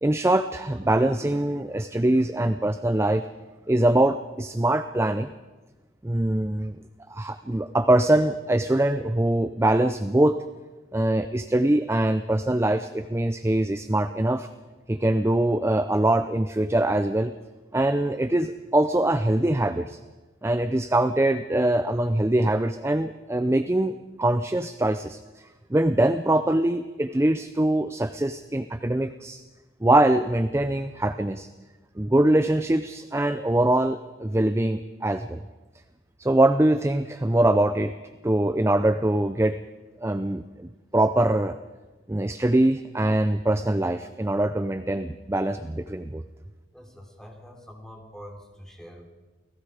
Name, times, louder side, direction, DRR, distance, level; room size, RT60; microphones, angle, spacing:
voice 1, 0.0-3.2 3.7-5.3 6.0-6.8 7.1-10.4 10.9-14.5 14.9-17.3 17.7-20.0 20.4-29.4 29.8-31.5 32.0-35.4 36.2-38.0 38.2-39.6 40.0-41.6 42.1-46.2, right 1 dB, 15° right, 10 dB, 0.5 m, -23 dB
voice 2, 46.7-49.1, equal, 5° left, 2 dB, 3.3 m, -45 dB
29.0 x 18.5 x 5.0 m, 1.2 s
head